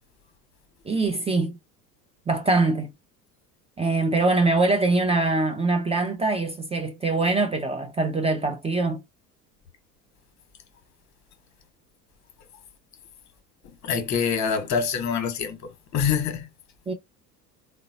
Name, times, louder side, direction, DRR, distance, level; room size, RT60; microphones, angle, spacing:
voice 1, 0.9-1.5 2.3-2.9 3.8-9.0 16.9-17.0, right 3 dB, 15° right, 0.5 m, -23 dB
voice 2, 13.8-16.5, left 6 dB, 35° left, 1.1 m, -25 dB
3.8 x 2.1 x 2.6 m
figure-of-eight pair, 75°, 49 cm